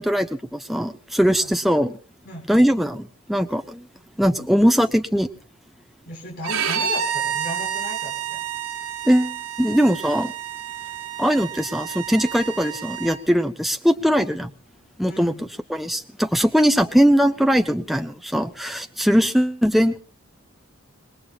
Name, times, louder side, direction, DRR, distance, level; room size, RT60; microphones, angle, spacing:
voice 1, 0.0-2.0 2.5-3.8 4.2-5.3 9.0-10.3 11.2-14.5 15.0-15.3 15.7-20.0, equal, ahead, 6 dB, 0.9 m, -20 dB
voice 2, 6.1-8.4 15.1-15.4, left 1 dB, 45° left, -1 dB, 6.7 m, -35 dB
Bowed string instrument, 6.4-13.2, right 8 dB, 60° right, 5.6 m, -29 dB
26.5 x 20.5 x 2.5 m, 0.39 s
head